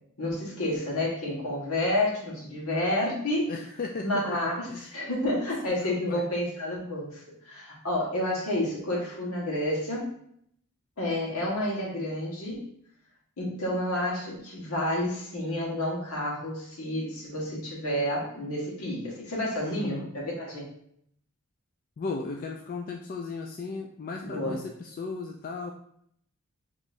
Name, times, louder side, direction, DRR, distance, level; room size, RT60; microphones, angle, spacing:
voice 1, 0.2-3.5 4.0-10.1 11.0-12.7 13.4-20.7 24.2-24.6, left 1 dB, 70° left, -3 dB, 1.5 m, -30 dB
voice 2, 3.5-4.9 5.8-6.2 19.6-20.1 22.0-25.7, left 4 dB, 40° left, 2 dB, 0.3 m, -36 dB
6.1 x 3.0 x 2.6 m, 0.69 s
head